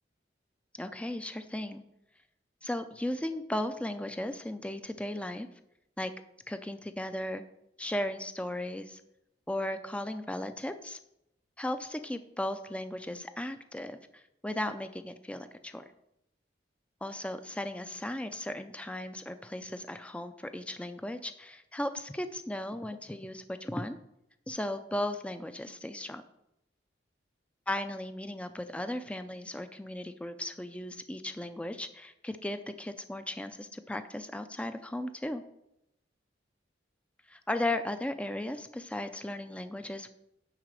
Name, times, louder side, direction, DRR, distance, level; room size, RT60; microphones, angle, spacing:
voice 1, 0.7-1.8 2.6-5.5 6.0-6.1 6.5-7.4 7.8-9.0 9.5-11.0 11.6-15.8 17.0-24.0 24.5-26.2 27.7-35.4 37.3-40.1, left 1 dB, 5° left, 9 dB, 0.4 m, -36 dB
10.5 x 4.1 x 7.5 m, 0.82 s
head